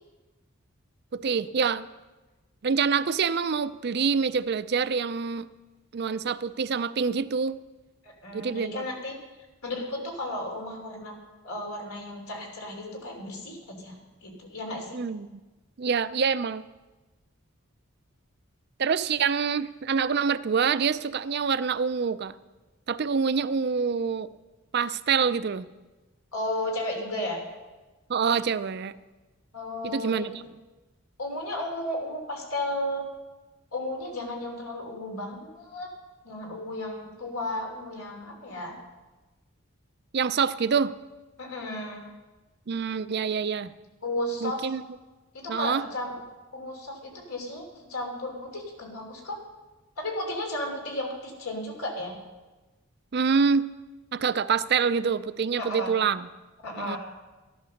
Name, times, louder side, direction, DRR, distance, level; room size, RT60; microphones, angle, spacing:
voice 1, 1.1-1.9 2.6-5.5 5.9-7.6 8.3-8.8 14.9-15.4 15.8-16.6 18.8-22.3 22.9-24.3 24.7-25.7 28.1-29.0 29.8-30.4 40.1-40.9 42.7-43.7 44.4-44.8 45.5-45.8 53.1-53.7 54.1-56.3 56.8-57.0, right 6 dB, 50° right, 15 dB, 0.4 m, -26 dB
voice 2, 8.0-9.1 9.6-11.1 11.4-13.9 14.2-15.0 26.3-27.4 29.5-30.3 31.2-33.0 33.7-35.9 36.2-38.7 41.4-42.0 44.0-44.7 45.3-46.2 46.5-49.4 50.0-52.1 55.6-55.9 56.6-57.0, left 1 dB, 80° left, 1 dB, 3.1 m, -34 dB
13.5 x 11.0 x 6.5 m, 1.2 s
head